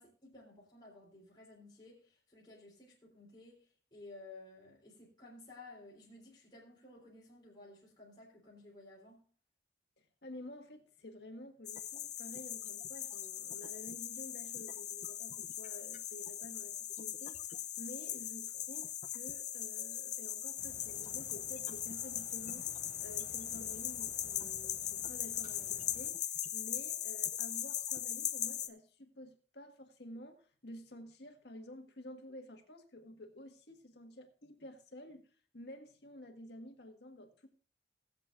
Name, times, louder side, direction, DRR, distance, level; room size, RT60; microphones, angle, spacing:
voice 1, 0.0-9.2, left 2 dB, 25° left, -5 dB, 3.4 m, -55 dB
voice 2, 10.2-17.4 17.8-22.7 23.0-26.2 26.5-35.3 35.5-37.5, left 1 dB, 65° left, 5 dB, 1.7 m, -51 dB
sound 1, 11.6-28.7, left 11 dB, 40° left, 0.7 m, -40 dB
sound 2, 20.6-26.1, right 1 dB, 25° right, 4.3 m, -57 dB
20.5 x 7.6 x 2.6 m, 0.43 s
head